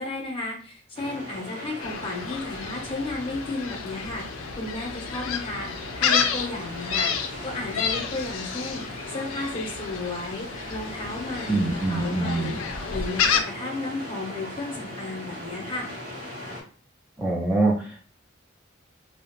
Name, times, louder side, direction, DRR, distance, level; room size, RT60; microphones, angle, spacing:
voice 1, 0.0-4.2 4.6-11.6 11.9-12.6 12.9-15.9, left 2 dB, 25° left, -1 dB, 0.7 m, -33 dB
sound 1, 1.0-16.6, left 1 dB, 45° right, 0.8 m, -39 dB
Gull seagull, 1.8-13.4, left 7 dB, 85° left, 0.4 m, -30 dB
voice 2, 11.5-12.6 17.2-18.0, right 2 dB, 10° right, -4 dB, 0.4 m, -24 dB
2.3 x 2.0 x 2.9 m, 0.42 s
head